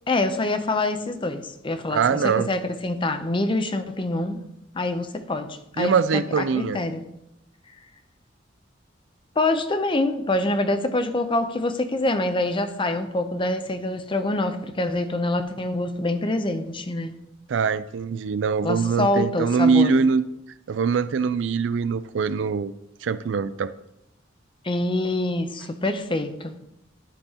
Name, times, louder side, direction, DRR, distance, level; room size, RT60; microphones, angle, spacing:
voice 1, 0.1-4.4 4.7-7.0 9.4-17.2 18.6-19.9 24.6-26.6, left 2 dB, 25° left, 0.6 m, -25 dB
voice 2, 1.9-2.5 5.8-6.8 17.5-20.2 20.7-22.7 23.0-23.7, right 5 dB, 70° right, 0.4 m, -22 dB
11.5 x 6.8 x 2.9 m
head